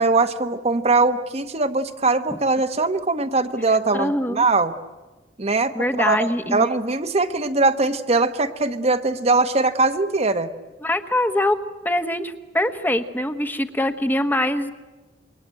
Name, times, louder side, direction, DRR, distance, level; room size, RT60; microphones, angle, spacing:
voice 1, 0.0-4.7 5.4-10.5, right 3 dB, 35° right, 9 dB, 1.0 m, -21 dB
voice 2, 3.9-4.5 5.7-6.7 10.8-11.6 11.8-14.7, left 1 dB, 10° left, 9 dB, 1.1 m, -23 dB
27.0 x 22.5 x 8.9 m, 1.2 s
head